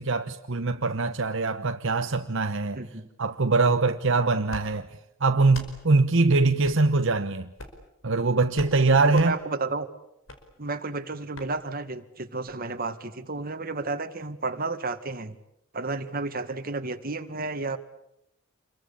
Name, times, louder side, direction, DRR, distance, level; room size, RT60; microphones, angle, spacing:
voice 1, 0.0-2.8 3.2-4.9 5.2-7.5 8.0-9.3, right 3 dB, 65° right, 1.0 m, -23 dB
voice 2, 2.7-3.1 9.0-9.9 10.6-15.4 15.7-17.8, right 3 dB, 45° right, 2.0 m, -32 dB
sound 1, 4.5-4.7 5.5-5.7 6.6-6.8 7.5-7.8 8.5-8.8 9.1-9.3 10.3-10.4 11.3-11.5, left 1 dB, 70° left, 5.1 m, -40 dB
28.5 x 23.0 x 8.6 m
head